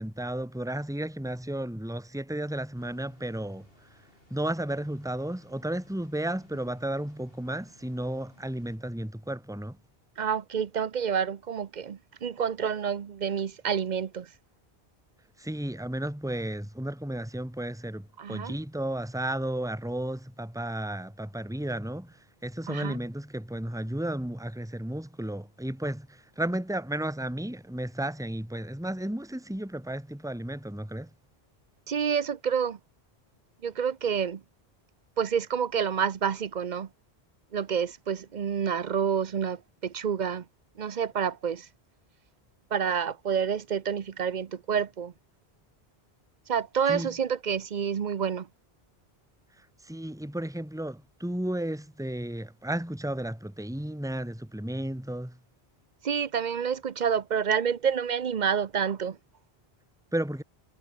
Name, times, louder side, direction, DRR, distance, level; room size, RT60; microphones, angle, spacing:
voice 1, 0.0-4.0 4.3-9.8 15.4-31.1 46.9-47.1 49.6-55.4 60.1-60.4, right 1 dB, 5° right, 2.3 m, -33 dB
sound 1, 2.8-8.8, left 1 dB, 65° left, 7.4 m, -61 dB
voice 2, 10.2-14.3 18.2-18.6 22.7-23.0 31.9-32.8 33.6-34.4 35.2-36.9 37.5-40.4 40.8-41.7 42.7-45.1 46.5-48.5 56.0-59.2, right 7 dB, 50° right, 0.8 m, -28 dB
omnidirectional pair, 1.1 m